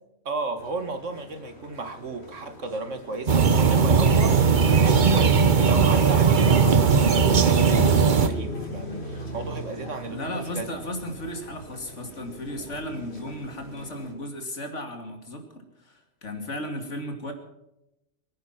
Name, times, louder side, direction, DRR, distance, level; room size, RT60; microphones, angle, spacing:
voice 1, 0.3-4.4 4.8-10.7, right 3 dB, 85° right, 8 dB, 2.2 m, -33 dB
sound 1, 0.6-14.1, equal, 60° left, 4.2 m, -40 dB
sound 2, 3.3-8.3, right 5 dB, 45° right, 1.1 m, -18 dB
voice 2, 10.1-17.3, left 1 dB, 75° left, 4 dB, 2.9 m, -35 dB
23.0 x 10.5 x 6.0 m, 0.88 s
omnidirectional pair, 1.2 m